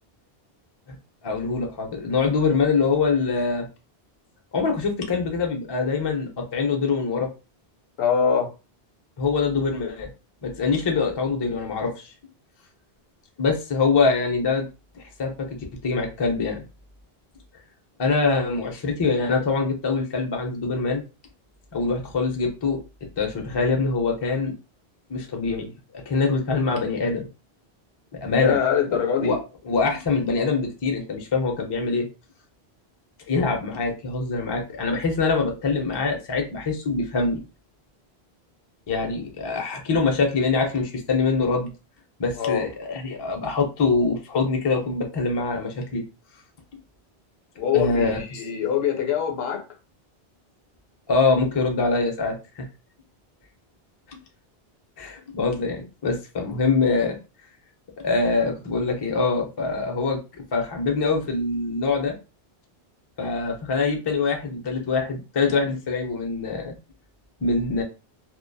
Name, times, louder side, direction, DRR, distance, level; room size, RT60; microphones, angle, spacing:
voice 1, 1.2-3.7 4.5-7.3 9.2-10.1 10.4-12.1 13.4-14.7 14.9-15.5 15.8-16.6 18.0-21.0 21.7-22.8 23.2-24.5 25.1-27.2 28.2-28.6 28.9-29.4 29.6-32.1 33.3-37.4 38.9-41.7 42.2-46.0 47.7-48.4 51.1-52.6 54.1-54.2 55.0-57.2 58.0-60.2 60.5-62.1 63.2-66.7 67.4-67.8, left 4 dB, 35° left, 0.4 m, -24 dB
voice 2, 8.0-8.5 28.4-29.4 33.3-33.5 42.4-42.6 47.6-49.6, left 7 dB, 70° left, 0.8 m, -23 dB
2.6 x 2.1 x 2.2 m
omnidirectional pair, 1.1 m